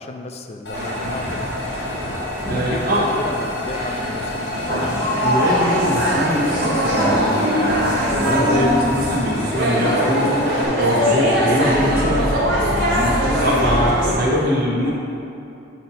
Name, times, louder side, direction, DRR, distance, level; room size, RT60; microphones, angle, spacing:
voice 1, 0.0-1.5 2.6-4.8 12.6-13.3, left 2 dB, 30° left, 5 dB, 0.3 m, -32 dB
sound 1, 0.7-10.7, left 1 dB, 60° left, 0.7 m, -30 dB
sound 2, 0.7-12.1, equal, 15° right, 1.3 m, -31 dB
voice 2, 2.5-3.0 5.2-10.3 10.8-12.3 12.8-14.9, equal, 50° right, -6 dB, 1.1 m, -22 dB
sound 3, 4.5-14.1, equal, 85° right, 1.5 m, -20 dB
7.5 x 2.9 x 5.6 m, 2.6 s
head